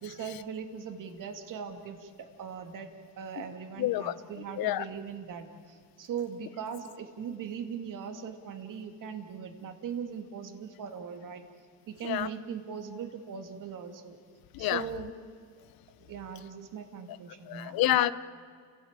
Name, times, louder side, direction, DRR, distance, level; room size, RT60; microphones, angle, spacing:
voice 1, 0.0-2.9 3.2-11.4 11.9-14.2 14.6-15.1 16.0-17.8, right 7 dB, 60° right, 6 dB, 2.4 m, -40 dB
voice 2, 3.8-4.1 4.6-4.8 12.0-12.3 14.5-14.9 17.5-18.1, left 14 dB, 75° left, 15 dB, 1.0 m, -27 dB
29.5 x 17.5 x 9.0 m, 2.2 s
cardioid pair, 115°, 36 cm